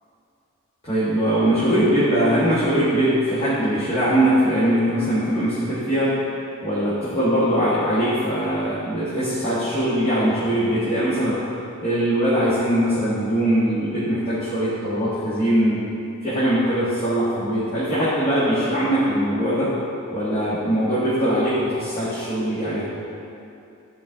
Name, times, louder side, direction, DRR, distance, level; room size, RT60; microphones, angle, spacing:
voice 1, 0.8-6.2 6.6-11.4 11.8-15.9 16.2-19.7 20.1-22.9, right 1 dB, 25° left, -13 dB, 1.5 m, -21 dB
10.5 x 4.2 x 3.6 m, 2.7 s
head